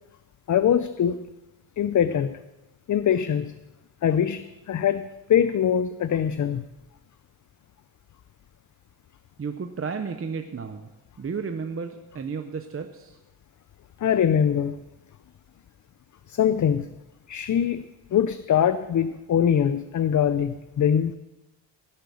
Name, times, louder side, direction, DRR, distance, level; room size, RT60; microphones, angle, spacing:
voice 1, 0.5-1.2 1.8-2.4 2.9-3.5 4.0-6.6 14.0-14.8 16.3-16.9 17.3-17.9 18.1-21.1, left 9 dB, 45° left, 13 dB, 0.5 m, -23 dB
voice 2, 9.4-10.9 11.2-13.2, right 5 dB, 30° right, 6 dB, 0.8 m, -33 dB
16.0 x 7.8 x 7.0 m, 1.1 s
wide cardioid pair, 120°, 44 cm